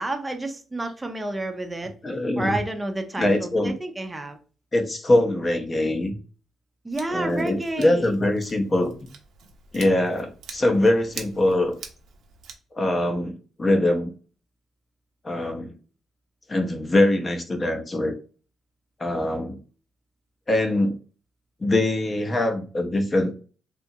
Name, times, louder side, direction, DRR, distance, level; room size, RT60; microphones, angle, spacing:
voice 1, 0.0-1.9 2.4-4.4 6.8-8.1, right 2 dB, 15° right, 6 dB, 0.5 m, -30 dB
voice 2, 2.0-2.6 3.2-3.7 4.7-6.2 7.1-8.9 9.7-11.8 12.7-14.1 15.2-15.7 16.5-18.1 19.0-19.6 20.5-21.0 21.6-23.3, left 1 dB, 30° left, 5 dB, 0.6 m, -23 dB
Scissors, 6.9-12.6, right 6 dB, 75° right, 0.6 m, -45 dB
2.8 x 2.3 x 2.7 m, 0.37 s
cardioid pair, 90°, 0 cm